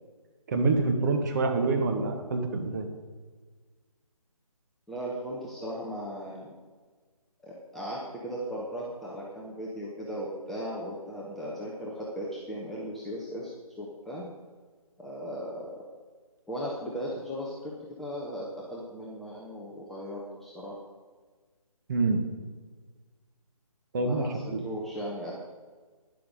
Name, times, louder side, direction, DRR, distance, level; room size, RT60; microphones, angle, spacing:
voice 1, 0.5-2.9 21.9-22.2 23.9-24.6, right 3 dB, 30° right, 3 dB, 1.6 m, -26 dB
voice 2, 4.9-6.5 7.4-13.5 13.8-14.3 15.0-15.8 16.5-20.7 24.0-25.3, equal, ahead, -6 dB, 0.8 m, -37 dB
11.5 x 10.5 x 5.2 m, 1.4 s
figure-of-eight pair, 150°, 19 cm